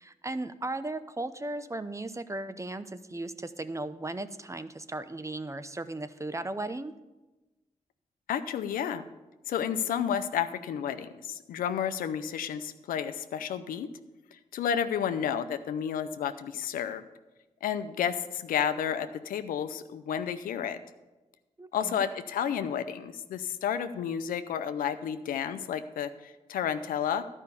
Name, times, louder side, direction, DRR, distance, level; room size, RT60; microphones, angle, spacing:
voice 1, 0.0-6.9 21.6-22.1, right 2 dB, 20° right, 12 dB, 0.7 m, -36 dB
voice 2, 8.3-9.0 9.5-13.9 14.3-17.1 17.6-20.8 21.7-27.2, left 8 dB, 85° left, 10 dB, 0.5 m, -31 dB
11.5 x 5.4 x 6.8 m, 1.1 s
supercardioid pair, 45°, 14 cm